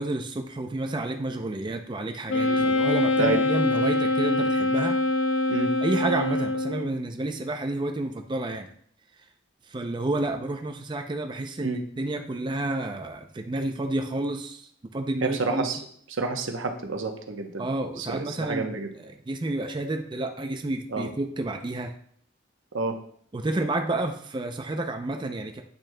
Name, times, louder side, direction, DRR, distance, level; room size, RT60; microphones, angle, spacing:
voice 1, 0.0-5.0 5.8-8.7 9.7-15.7 17.6-21.9 23.3-25.6, right 2 dB, 25° right, 4 dB, 0.4 m, -30 dB
Wind instrument woodwind instrument, 2.3-6.9, left 2 dB, 85° left, 0.5 m, -24 dB
voice 2, 15.2-15.8 16.2-17.6 18.0-18.9 20.9-21.1 22.7-23.0, right 3 dB, 90° right, 4 dB, 0.8 m, -29 dB
8.4 x 6.2 x 2.2 m, 0.63 s
head